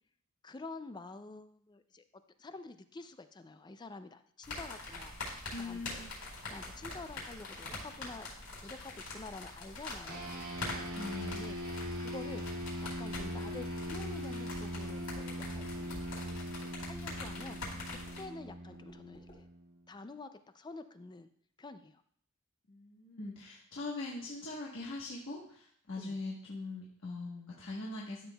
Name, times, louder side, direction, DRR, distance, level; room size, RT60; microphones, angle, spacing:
voice 1, 0.4-2.0 2.4-6.1 6.5-8.3 8.6-10.3 10.6-11.0 11.3-12.5 12.8-16.0 16.6-17.6 17.9-19.5 19.9-21.3 21.6-22.0 26.0-26.2, left 3 dB, 20° left, 10 dB, 0.4 m, -48 dB
Rain on umbrella, 4.4-18.2, left 2 dB, 80° left, 4.1 m, -44 dB
voice 2, 5.5-6.1 10.9-11.3 22.7-28.3, left 2 dB, 60° left, -4 dB, 1.3 m, -41 dB
sound 1, 10.1-19.8, equal, 85° right, 2.2 m, -41 dB
sound 2, 14.2-19.5, left 1 dB, 40° left, 3.7 m, -63 dB
12.5 x 7.3 x 2.3 m, 0.64 s
head